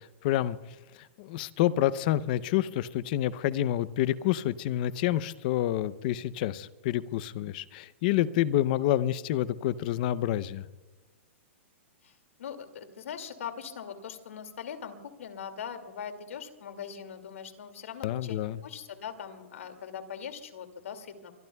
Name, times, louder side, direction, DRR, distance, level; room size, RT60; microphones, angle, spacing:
voice 1, 0.2-0.6 1.2-10.6 18.0-18.6, left 13 dB, 40° left, 16 dB, 0.7 m, -28 dB
voice 2, 12.0-21.3, left 7 dB, 90° left, 6 dB, 2.4 m, -41 dB
24.5 x 23.0 x 2.3 m, 1.2 s
supercardioid pair, 165°, 7 cm